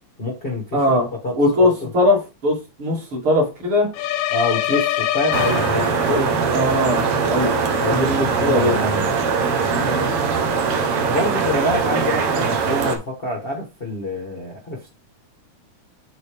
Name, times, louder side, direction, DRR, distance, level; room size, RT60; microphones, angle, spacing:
voice 1, 0.2-1.9 4.3-6.3 7.7-9.1 11.0-14.9, left 1 dB, 60° left, 1 dB, 0.5 m, -26 dB
voice 2, 0.7-1.1 1.4-3.9 6.1-6.2 6.5-8.1 8.4-8.7 9.8-10.1, left 1 dB, 45° right, -2 dB, 2.9 m, -20 dB
sound 1, 3.9-6.3, left 13 dB, 80° left, 1.9 m, -23 dB
sound 2, 5.3-13.0, right 5 dB, 65° right, 1.6 m, -21 dB
8.2 x 4.1 x 3.5 m, 0.29 s
omnidirectional pair, 3.5 m